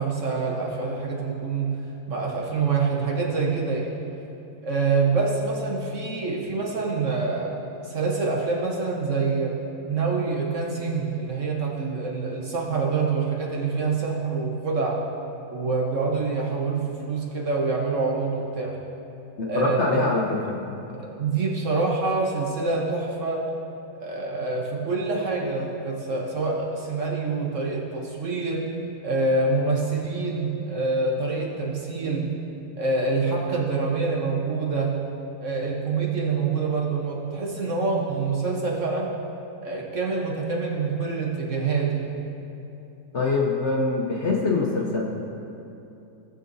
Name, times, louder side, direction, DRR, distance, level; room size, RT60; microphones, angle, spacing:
voice 1, 0.0-1.8 2.1-3.9 4.6-7.6 7.8-9.6 9.9-15.0 15.5-18.8 19.5-20.0 21.0-23.5 24.0-28.7 29.0-32.3 32.8-35.1 35.4-39.1 39.6-42.1, right 4 dB, 50° right, -2 dB, 1.3 m, -26 dB
voice 2, 19.4-20.6 43.1-45.0, left 3 dB, 50° left, -2 dB, 1.0 m, -24 dB
17.5 x 6.6 x 2.7 m, 2.8 s
omnidirectional pair, 1.8 m